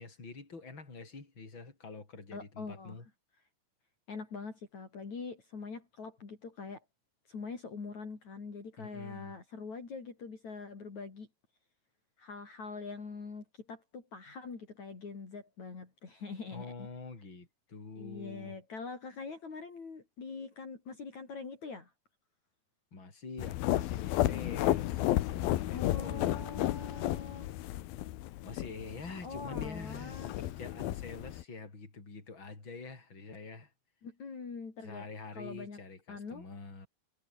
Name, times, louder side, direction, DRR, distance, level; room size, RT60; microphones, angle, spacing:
voice 1, 0.0-3.0 8.8-9.3 16.5-18.6 22.9-27.1 28.4-33.7 34.8-36.9, left 3 dB, 30° left, 6.2 m, -46 dB
voice 2, 2.3-3.0 4.1-6.8 7.3-11.3 12.2-16.9 18.0-21.9 25.7-27.5 29.2-30.4 34.0-35.8 36.1-36.5, left 4 dB, 50° left, 5.7 m, -44 dB
sound 1, 23.4-31.4, left 15 dB, 85° left, 2.9 m, -33 dB
omnidirectional pair, 4.3 m